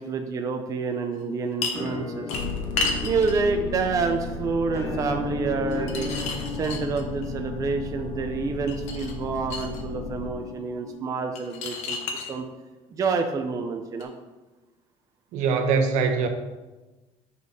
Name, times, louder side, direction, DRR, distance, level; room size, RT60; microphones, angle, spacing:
voice 1, 0.0-2.3 3.0-6.1 6.5-12.0 12.3-12.5 12.9-14.1, right 4 dB, 25° right, 5 dB, 0.5 m, -28 dB
sound 1, 1.6-1.9 2.3-3.4 5.7-7.3 8.7-9.8 11.4-12.3 14.0-14.1, left 4 dB, 65° left, 1.1 m, -31 dB
Musical instrument, 1.7-11.5, left 3 dB, 20° left, 1.4 m, -36 dB
sound 2, 2.3-10.3, left 3 dB, 80° left, 1.4 m, -36 dB
voice 2, 15.3-16.3, right 5 dB, 70° right, 6 dB, 1.0 m, -22 dB
7.5 x 4.1 x 5.5 m, 1.1 s
cardioid pair, 150°, 13 cm